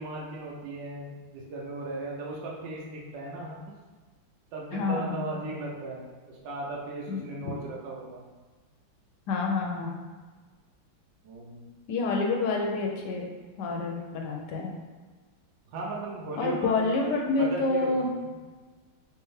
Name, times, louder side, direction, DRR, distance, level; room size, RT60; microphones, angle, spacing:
voice 1, 0.0-3.6 4.5-8.2 11.2-11.7 15.7-17.1 17.4-17.9, right 2 dB, 70° right, -3 dB, 1.3 m, -37 dB
voice 2, 4.7-5.3 7.1-7.6 9.3-10.0 11.9-13.3 13.6-14.7 16.4-18.1, left 3 dB, 70° left, 1 dB, 1.1 m, -28 dB
3.4 x 3.1 x 3.2 m, 1.4 s
omnidirectional pair, 2.1 m